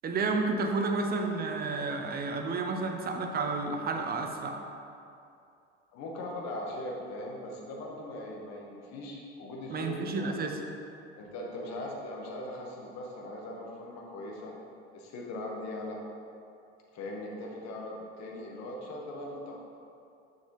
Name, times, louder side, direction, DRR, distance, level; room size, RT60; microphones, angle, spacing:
voice 1, 0.0-4.6 9.7-10.6, right 3 dB, 30° right, 3 dB, 0.8 m, -31 dB
voice 2, 5.9-10.3 11.1-14.5 14.9-16.0 16.9-19.5, left 1 dB, 50° left, -1 dB, 1.5 m, -40 dB
6.9 x 6.4 x 3.2 m, 2.6 s
hypercardioid pair, 70°, 33 cm